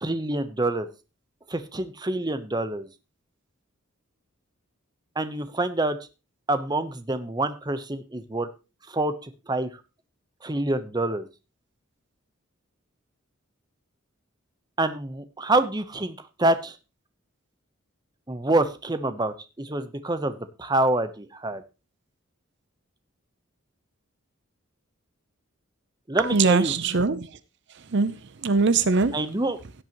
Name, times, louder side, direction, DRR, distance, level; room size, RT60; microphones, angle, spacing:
voice 1, 0.0-0.9 1.5-2.9 5.2-6.0 6.5-8.5 8.9-9.7 10.4-11.3 14.8-16.8 18.3-21.6 26.1-26.7 29.1-29.8, right 2 dB, 20° right, 0.9 m, -26 dB
voice 2, 26.2-27.3 27.9-28.1 28.4-29.1, right 4 dB, 55° right, 0.7 m, -21 dB
16.5 x 8.1 x 3.0 m
head